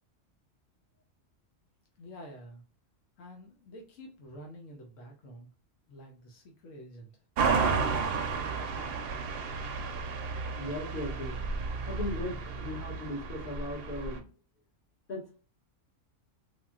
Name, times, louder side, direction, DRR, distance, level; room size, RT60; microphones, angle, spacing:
voice 1, 2.0-2.6 3.2-5.5 5.9-7.1 8.7-9.0, equal, 85° left, 2 dB, 1.1 m, -48 dB
sound 1, 7.4-14.2, right 4 dB, 60° right, 0.7 m, -32 dB
voice 2, 10.4-14.2 15.1-15.4, left 1 dB, 45° left, -5 dB, 1.7 m, -38 dB
3.6 x 2.4 x 2.3 m, 0.38 s
omnidirectional pair, 1.3 m